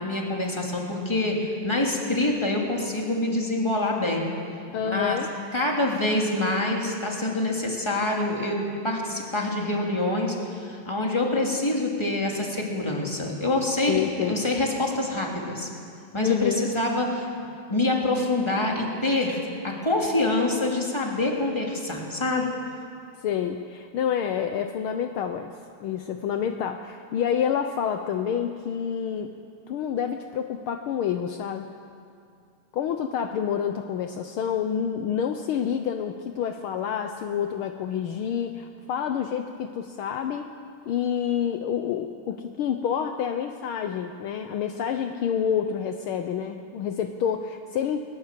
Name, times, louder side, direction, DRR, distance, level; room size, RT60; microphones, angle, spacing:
voice 1, 0.0-4.3 4.7-5.2 5.5-15.7 16.1-17.3 17.7-22.5, left 2 dB, 10° left, -1 dB, 2.6 m, -26 dB
voice 2, 4.7-5.3 13.9-14.5 16.2-16.7 23.2-25.5 25.8-29.3 29.7-31.7 32.7-40.5 40.9-48.0, left 8 dB, 75° left, 6 dB, 1.2 m, -28 dB
20.0 x 19.5 x 7.5 m, 2.4 s
omnidirectional pair, 3.3 m